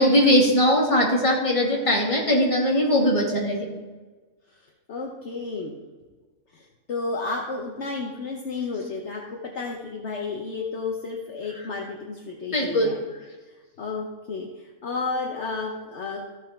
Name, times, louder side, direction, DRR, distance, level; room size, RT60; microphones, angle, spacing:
voice 1, 0.0-3.7 12.5-12.9, equal, 25° left, -2 dB, 2.1 m, -20 dB
voice 2, 4.9-5.7 6.5-13.0 13.8-16.2, left 3 dB, 55° left, 0 dB, 1.2 m, -32 dB
14.5 x 5.5 x 4.3 m, 1.3 s
omnidirectional pair, 1.5 m